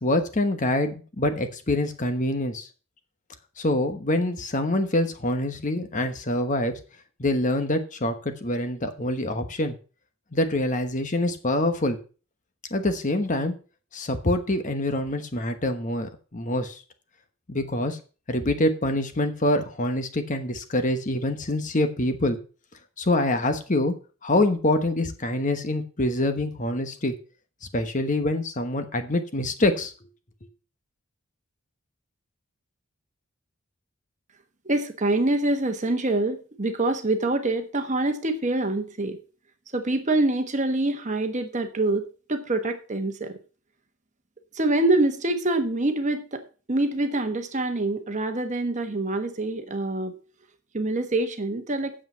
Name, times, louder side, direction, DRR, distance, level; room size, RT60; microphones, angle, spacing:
voice 1, 0.0-2.7 3.6-6.7 7.2-9.7 10.3-12.0 12.7-13.5 13.9-16.8 17.5-18.0 18.3-22.4 23.0-23.9 24.2-27.1 27.7-29.9, left 1 dB, 35° left, 8 dB, 1.1 m, -25 dB
voice 2, 34.6-39.2 39.7-43.4 44.5-46.4 46.7-50.1 50.7-51.9, right 2 dB, 35° right, 7 dB, 1.2 m, -25 dB
8.9 x 7.5 x 5.6 m, 0.36 s
head